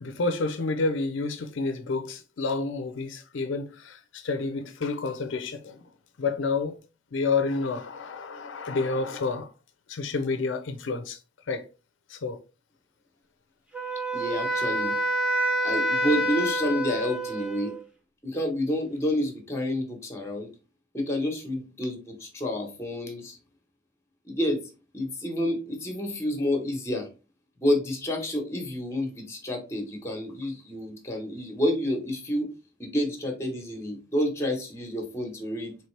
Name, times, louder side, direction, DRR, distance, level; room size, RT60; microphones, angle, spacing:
voice 1, 0.0-5.8 6.2-6.8 7.1-9.5 9.9-11.2 11.5-11.6 12.1-12.4, left 3 dB, 65° left, 0.5 m, -29 dB
Wind instrument woodwind instrument, 13.7-17.8, right 1 dB, 5° right, 0.8 m, -27 dB
voice 2, 14.1-15.0 15.6-17.7 18.2-20.5 20.9-23.4 24.2-24.6 24.9-27.1 27.6-32.5 32.8-35.8, left 1 dB, 15° left, 1.1 m, -29 dB
4.3 x 3.1 x 3.2 m
head